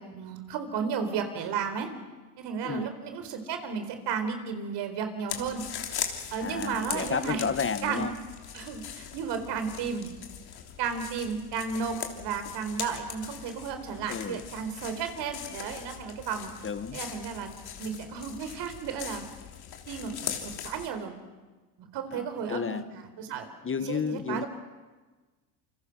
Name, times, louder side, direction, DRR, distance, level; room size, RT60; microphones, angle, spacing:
voice 1, 0.0-1.9 2.4-5.6 6.3-7.5 7.8-8.0 8.5-10.1 10.8-16.5 16.9-17.5 17.8-19.3 19.9-21.1 21.8-23.5 23.8-24.5, right 6 dB, 60° right, 7 dB, 4.2 m, -33 dB
sound 1, 5.3-20.9, left 9 dB, 55° left, 3.5 m, -40 dB
voice 2, 6.4-8.1 14.1-14.4 16.6-17.0 22.1-22.9 23.6-24.4, left 6 dB, 25° left, 12 dB, 1.3 m, -32 dB
28.5 x 25.0 x 6.2 m, 1.3 s
hypercardioid pair, 80°, 45 cm